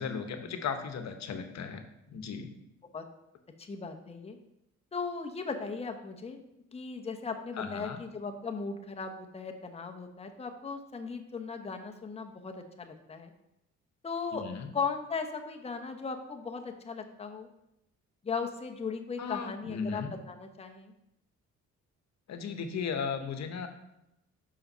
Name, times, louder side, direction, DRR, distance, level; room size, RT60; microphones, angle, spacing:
voice 1, 0.0-1.8 2.1-2.5 7.6-8.0 14.3-14.7 19.2-20.1 22.3-23.7, left 6 dB, 65° left, 7 dB, 1.0 m, -36 dB
voice 2, 3.6-4.4 4.9-6.4 6.7-13.3 14.0-14.4 14.7-17.5 18.2-20.9, left 5 dB, 20° left, 4 dB, 0.8 m, -37 dB
5.6 x 5.0 x 5.5 m, 0.85 s
cardioid pair, 90°, 30 cm